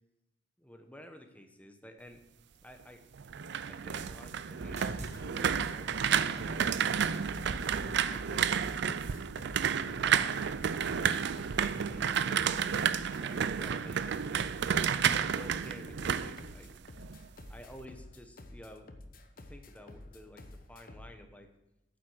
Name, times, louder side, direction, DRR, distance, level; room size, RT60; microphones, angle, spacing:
voice 1, 0.6-2.2 2.6-3.0 3.7-7.2 8.0-9.0 9.4-10.4 10.9-14.9 15.4-16.7 17.5-18.9 19.3-21.5, equal, 10° left, 5 dB, 1.0 m, -52 dB
sound 1, 3.2-17.2 17.5-17.9, right 7 dB, 65° right, 0.4 m, -31 dB
sound 2, 4.6-10.7, right 1 dB, 40° right, 1.4 m, -46 dB
sound 3, 4.9-21.2, left 1 dB, 50° left, 0.9 m, -50 dB
8.9 x 7.7 x 6.3 m, 0.94 s
head